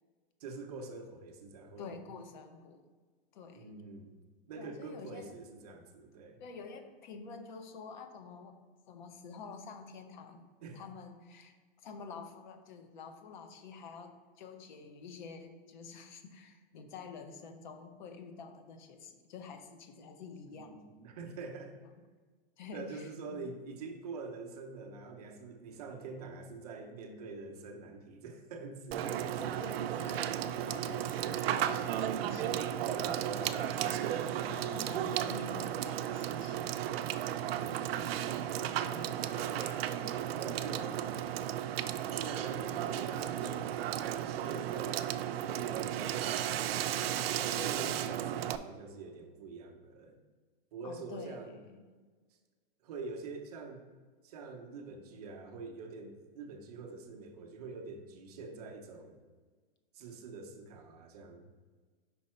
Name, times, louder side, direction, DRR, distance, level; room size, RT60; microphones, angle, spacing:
voice 1, 0.4-2.0 3.5-4.1 4.5-6.4 10.6-10.8 20.5-21.8 22.7-29.2 33.0-33.5 40.4-41.2 42.2-43.7 44.3-46.5 47.3-50.2 50.7-51.6 52.8-53.9 54.2-59.2 59.9-61.5, right 3 dB, 40° right, 4 dB, 0.7 m, -45 dB
voice 2, 1.8-2.8 3.3-3.8 4.6-5.3 6.4-8.6 8.9-10.4 10.7-20.8 21.8-21.9 22.6-23.5 29.0-36.6 38.8-40.2 40.8-41.1 50.8-51.9, left 5 dB, 50° left, 7 dB, 0.8 m, -48 dB
Water / Water tap faucet / Sink (filling or washing), 28.9-48.6, right 11 dB, 80° right, 0.5 m, -34 dB
5.4 x 4.5 x 4.2 m, 1.5 s
supercardioid pair, 175°, 30 cm